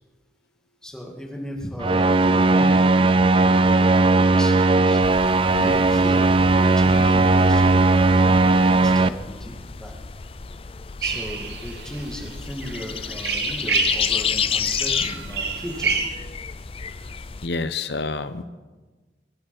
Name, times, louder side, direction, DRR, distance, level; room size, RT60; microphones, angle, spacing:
voice 1, 0.8-5.0 5.5-10.0 11.0-15.9, equal, 5° left, -1 dB, 2.4 m, -36 dB
sound 1, 1.8-9.1, right 3 dB, 30° right, 0.4 m, -17 dB
sound 2, 5.0-17.5, left 7 dB, 30° left, 0.5 m, -31 dB
sound 3, 11.0-16.1, right 5 dB, 70° right, 1.7 m, -29 dB
voice 2, 17.4-18.4, left 3 dB, 75° left, 12 dB, 0.9 m, -28 dB
23.5 x 9.3 x 6.0 m, 1.3 s
head